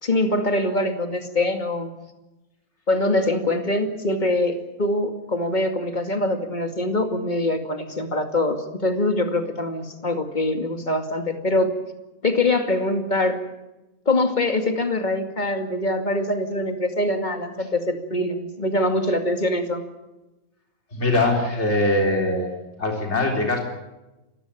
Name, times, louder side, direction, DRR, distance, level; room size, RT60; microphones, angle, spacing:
voice 1, 0.0-1.9 2.9-11.7 12.2-13.4 14.1-19.8, left 1 dB, 35° left, 6 dB, 2.5 m, -23 dB
voice 2, 20.9-22.5 22.8-23.6, left 2 dB, 55° left, 1 dB, 4.2 m, -22 dB
27.5 x 16.0 x 8.6 m, 1.0 s
omnidirectional pair, 1.4 m